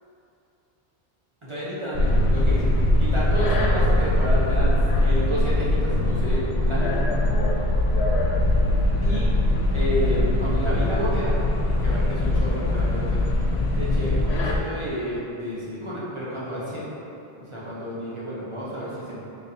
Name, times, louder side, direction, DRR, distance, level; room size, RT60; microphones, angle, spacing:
voice 1, 1.4-2.7 3.0-7.0 9.0-9.3 9.7-11.3 11.8-13.2 13.7-16.9 17.4-19.2, equal, 35° right, -9 dB, 0.8 m, -30 dB
sound 1, 1.9-14.6, left 1 dB, 85° left, 0.9 m, -21 dB
4.0 x 3.5 x 2.8 m, 2.8 s
omnidirectional pair, 1.0 m